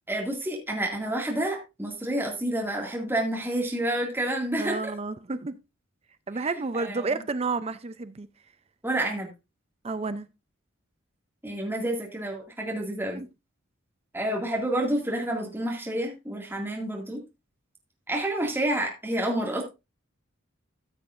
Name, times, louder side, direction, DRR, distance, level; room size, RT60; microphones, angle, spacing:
voice 1, 0.1-4.8 6.8-7.2 8.8-9.3 11.4-13.2 14.1-17.2 18.1-19.6, right 1 dB, 10° right, 2.2 m, -29 dB
voice 2, 4.6-5.6 6.3-8.3 9.8-10.3 13.1-13.3, right 3 dB, 30° right, 0.5 m, -30 dB
14.0 x 7.4 x 2.5 m
head